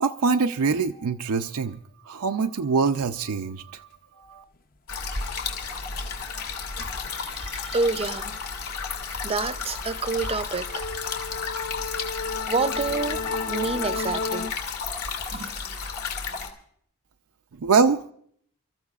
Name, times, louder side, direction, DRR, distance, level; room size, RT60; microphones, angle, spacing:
voice 1, 0.0-1.8 2.1-3.9 4.2-4.4 17.6-18.0, right 5 dB, 85° right, 0.6 m, -24 dB
sound 1, 4.9-16.5, left 5 dB, 85° left, 2.3 m, -33 dB
sound 2, 5.7-5.9 6.2-14.5, left 4 dB, 40° left, 0.7 m, -35 dB
voice 2, 7.1-8.3 9.2-10.8 12.5-13.2 13.5-14.5 15.3-15.5, right 4 dB, 25° right, 0.5 m, -28 dB
29.0 x 14.0 x 2.4 m
head